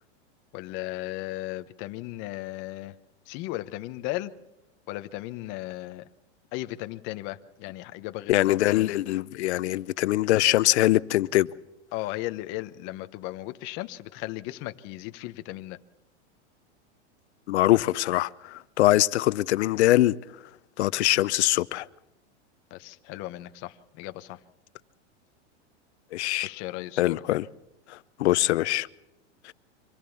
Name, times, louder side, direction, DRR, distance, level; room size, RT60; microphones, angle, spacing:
voice 1, 0.5-2.9 3.3-4.3 4.9-6.1 6.5-8.9 11.9-15.8 22.7-24.4 26.4-27.2, left 17 dB, 35° left, 0.9 m, -36 dB
voice 2, 8.3-11.5 17.5-20.2 20.8-21.9 26.1-26.5 27.0-27.5 27.9-28.9 29.4-29.5, left 16 dB, 70° left, 0.8 m, -23 dB
25.0 x 15.5 x 7.1 m
supercardioid pair, 155°, 35 cm